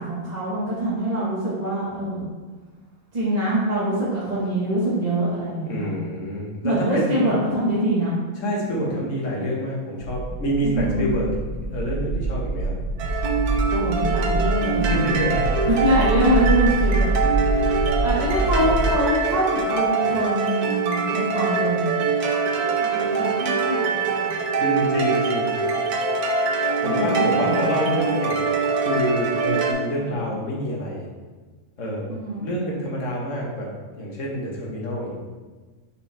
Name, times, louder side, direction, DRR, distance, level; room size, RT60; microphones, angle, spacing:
voice 1, 0.0-2.2 3.1-5.9 6.6-8.1 8.7-8.9 9.3-9.4 10.6-11.1 13.7-14.9 15.8-17.1 17.4-17.7 18.0-21.9 22.8-24.3 26.8-27.9 29.8-30.2 32.1-32.5, right 1 dB, 25° right, -9 dB, 1.4 m, -24 dB
voice 2, 5.6-7.4 8.4-11.3 11.6-12.7 14.8-15.7 24.6-25.5 26.8-28.5 28.8-31.0 31.8-35.1, equal, 55° left, -3 dB, 1.6 m, -27 dB
sound 1, 10.0-18.9, right 2 dB, 65° right, 0.9 m, -25 dB
sound 2, 13.0-29.7, right 4 dB, 85° right, 1.3 m, -24 dB
5.8 x 5.0 x 3.4 m, 1.3 s
omnidirectional pair, 1.6 m